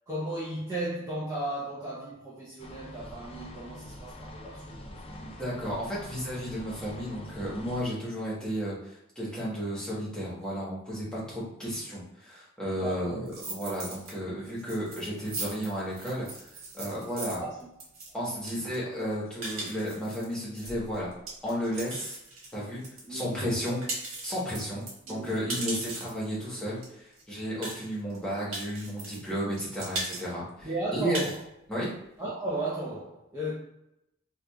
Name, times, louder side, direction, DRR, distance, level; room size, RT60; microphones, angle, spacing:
voice 1, 0.1-5.4 12.8-13.2 17.4-17.7 23.1-23.5 25.1-25.6 30.6-31.4 32.2-33.5, right 1 dB, 15° right, 0.6 m, -35 dB
sound 1, 2.6-7.8, left 1 dB, 30° left, 0.4 m, -45 dB
voice 2, 5.2-16.3 16.7-17.4 18.1-21.1 21.4-22.2 22.5-22.8 23.1-23.8 24.2-31.2 31.7-31.9, equal, 5° left, 1.2 m, -33 dB
sound 2, 13.3-14.1 14.5-23.1 23.4-26.2 26.8-26.9 27.1-27.2 27.6-28.2 28.5-29.3 29.6-30.2 30.6-30.7 31.0-31.4, right 2 dB, 85° right, 1.3 m, -38 dB
4.7 x 2.4 x 2.3 m
head